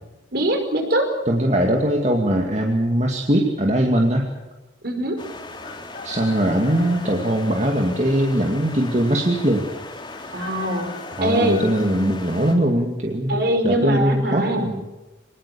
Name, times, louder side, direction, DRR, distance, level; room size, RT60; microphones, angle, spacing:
voice 1, 0.3-1.1 4.8-5.2 10.3-10.9 11.2-11.6 13.3-14.7, right 1 dB, 55° right, 5 dB, 5.3 m, -22 dB
voice 2, 1.3-4.3 6.0-9.7 11.2-13.4 13.6-14.8, right 1 dB, 35° right, 1 dB, 2.3 m, -21 dB
sound 1, 5.2-12.5, left 2 dB, 25° left, 3.4 m, -38 dB
Chicken rooster, 5.6-7.4 10.1-11.9, left 3 dB, 45° left, 5.8 m, -40 dB
24.5 x 20.0 x 7.0 m, 1.1 s
head